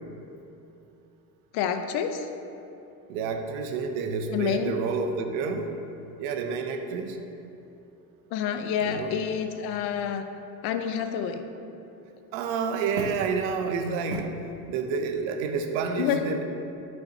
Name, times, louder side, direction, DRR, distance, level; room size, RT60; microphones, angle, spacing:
voice 1, 1.5-2.3 4.3-4.8 8.3-10.3 10.6-11.4 16.0-16.2, left 8 dB, 50° left, 7 dB, 0.6 m, -28 dB
voice 2, 3.1-5.7 6.2-7.2 8.8-9.1 12.3-14.4 14.7-16.4, right 5 dB, 65° right, 6 dB, 0.8 m, -29 dB
8.9 x 5.5 x 2.8 m, 2.8 s
hypercardioid pair, 65°, 48 cm